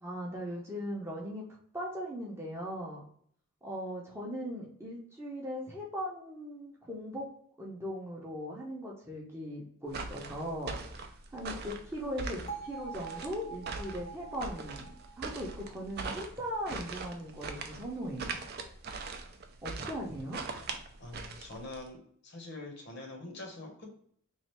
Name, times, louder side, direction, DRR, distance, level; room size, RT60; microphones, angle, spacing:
voice 1, 0.0-1.5 1.7-3.0 3.6-7.3 7.6-10.8 11.3-18.4 19.6-20.4, equal, 10° right, -3 dB, 0.7 m, -39 dB
sound 1, 9.9-21.9, right 4 dB, 45° right, 0.4 m, -41 dB
Bell, 12.5-16.5, right 5 dB, 25° left, 0.6 m, -46 dB
voice 2, 21.0-23.9, left 2 dB, 50° left, 1 dB, 0.9 m, -44 dB
3.2 x 2.4 x 4.3 m, 0.63 s
head